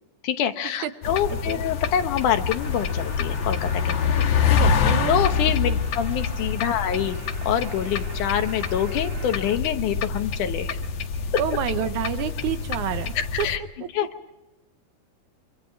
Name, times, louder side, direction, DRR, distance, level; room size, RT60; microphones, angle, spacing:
voice 1, 0.2-5.7 6.0-10.8 13.2-13.6 13.9-14.1, left 9 dB, 80° left, 8 dB, 2.7 m, -26 dB
sound 1, 1.0-13.6, left 6 dB, 60° left, 2.0 m, -26 dB
voice 2, 1.3-1.6 4.8-5.1 5.7-5.8 11.4-13.5 13.8-13.9, right 10 dB, 80° right, 10 dB, 2.4 m, -28 dB
sound 2, 2.6-9.6, right 4 dB, 45° right, 4.0 m, -44 dB
25.5 x 25.5 x 4.7 m, 1.0 s
omnidirectional pair, 3.6 m